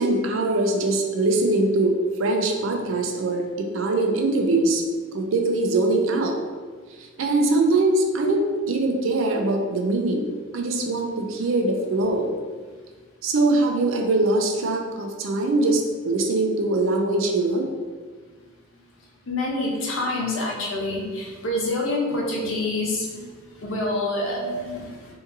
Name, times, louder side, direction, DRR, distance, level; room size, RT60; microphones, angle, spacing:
voice 1, 0.0-4.8 5.1-6.3 7.0-12.3 13.2-17.7 22.2-22.3 24.4-24.7, right 2 dB, 85° right, 3 dB, 0.5 m, -22 dB
voice 2, 19.3-23.2 23.6-25.1, left 2 dB, 90° left, -2 dB, 0.9 m, -27 dB
3.8 x 2.6 x 2.6 m, 1.5 s
head